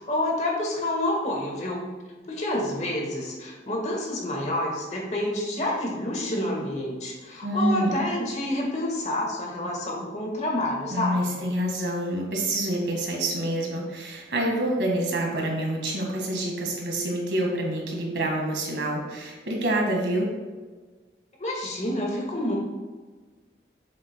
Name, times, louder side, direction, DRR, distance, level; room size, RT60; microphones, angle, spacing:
voice 1, 0.0-1.9 2.3-11.3 21.4-22.6, left 1 dB, 40° left, -1 dB, 1.5 m, -28 dB
voice 2, 7.4-7.9 10.9-20.3, right 1 dB, 85° right, 0 dB, 1.7 m, -27 dB
7.6 x 7.2 x 2.2 m, 1.4 s
head